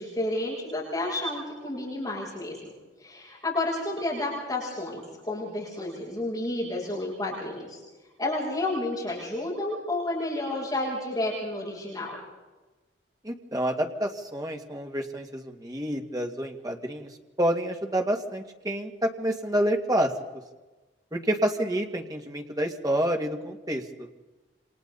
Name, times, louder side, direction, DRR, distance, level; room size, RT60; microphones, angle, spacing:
voice 1, 0.0-2.7 3.0-7.8 8.2-12.1, left 2 dB, 20° left, -7 dB, 7.6 m, -31 dB
voice 2, 13.2-17.1 17.4-20.1 21.1-24.1, right 1 dB, 20° right, 2 dB, 2.1 m, -28 dB
29.0 x 26.5 x 4.2 m, 1.2 s
head